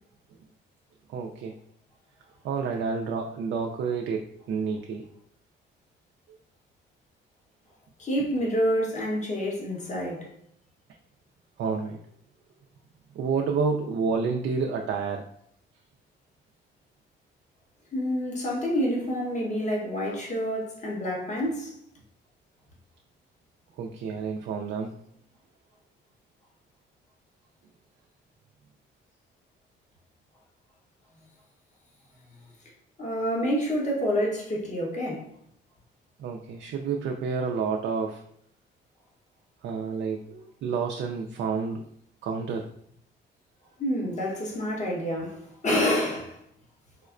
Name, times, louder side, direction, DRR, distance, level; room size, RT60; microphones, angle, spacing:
voice 1, 1.1-1.5 2.4-5.1 6.3-6.4 11.6-12.0 13.2-15.2 23.8-24.9 36.2-38.2 39.6-41.8 42.2-42.7, right 5 dB, 65° right, 0.4 m, -29 dB
voice 2, 8.0-10.3 17.9-21.8 33.0-35.3 43.8-46.4, equal, 35° left, 1.1 m, -28 dB
4.9 x 2.1 x 2.5 m
cardioid pair, 90°, 20 cm